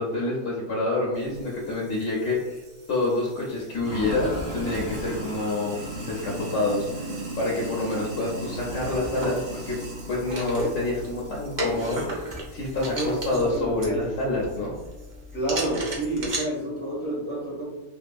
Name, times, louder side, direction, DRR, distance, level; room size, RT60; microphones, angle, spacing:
voice 1, 0.0-2.6 2.9-9.8 10.1-14.7, left 2 dB, 80° left, -4 dB, 1.0 m, -27 dB
Sink (filling or washing), 1.2-13.5, right 1 dB, 85° right, 1.2 m, -37 dB
sound 1, 8.5-16.4, right 1 dB, 45° right, 0.8 m, -35 dB
voice 2, 12.7-14.0 15.3-17.7, right 1 dB, 10° left, -5 dB, 0.7 m, -29 dB
2.9 x 2.6 x 2.2 m, 1.1 s
omnidirectional pair, 1.2 m